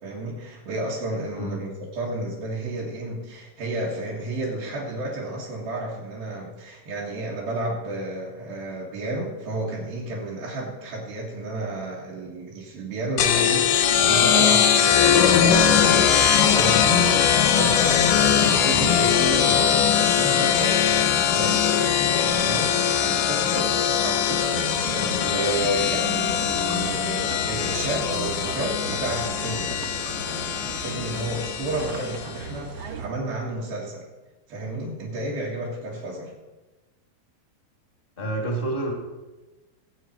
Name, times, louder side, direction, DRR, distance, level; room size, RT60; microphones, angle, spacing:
voice 1, 0.0-20.8 21.3-29.8 30.3-34.1 34.5-36.3, right 1 dB, 80° right, -6 dB, 3.9 m, -31 dB
sound 1, 13.2-32.3, left 8 dB, 70° left, 2.4 m, -21 dB
sound 2, 24.4-33.1, right 5 dB, 60° right, 2.0 m, -37 dB
voice 2, 38.2-38.9, right 2 dB, 15° left, 0 dB, 2.1 m, -28 dB
19.0 x 8.5 x 4.5 m, 1.1 s
omnidirectional pair, 4.1 m